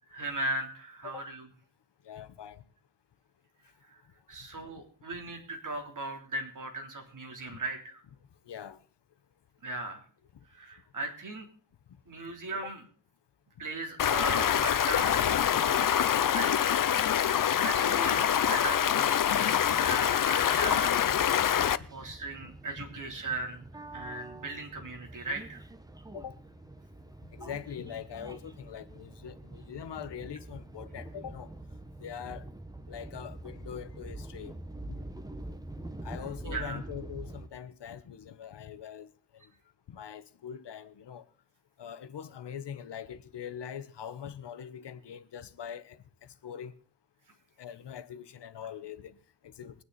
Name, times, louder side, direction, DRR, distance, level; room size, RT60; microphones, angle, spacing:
voice 1, 0.1-1.5 3.8-4.0 4.3-8.0 9.6-10.0 10.5-11.5 12.1-12.8 13.6-16.7 17.1-21.0 21.9-25.6 36.4-36.8, right 2 dB, 50° right, 3.4 m, -38 dB
voice 2, 2.0-2.6 7.5-7.6 8.5-8.8 12.5-12.7 17.4-17.7 26.1-26.4 27.3-31.5 32.0-32.4 32.9-34.5 34.9-35.0 36.0-39.1 39.9-41.2 41.8-46.0 46.4-46.7 47.6-49.2 49.4-49.7, left 8 dB, 85° left, 1.1 m, -42 dB
Stream, 14.0-21.8, left 9 dB, 50° left, 0.6 m, -25 dB
sound 1, 19.6-37.5, right 1 dB, 10° right, 0.9 m, -45 dB
22.5 x 9.6 x 4.1 m
wide cardioid pair, 170°, 41 cm